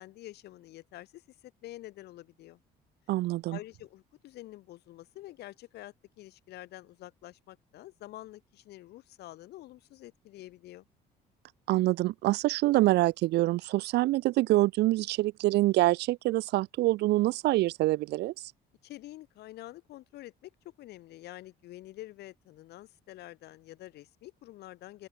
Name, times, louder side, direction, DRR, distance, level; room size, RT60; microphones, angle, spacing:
voice 1, 0.0-2.6 3.5-10.9 18.8-20.5 20.8-25.1, left 16 dB, 75° left, 3.7 m, -47 dB
voice 2, 3.1-3.6 11.7-18.3, right 17 dB, 80° right, 1.5 m, -26 dB
open air
cardioid pair, 110°, 17 cm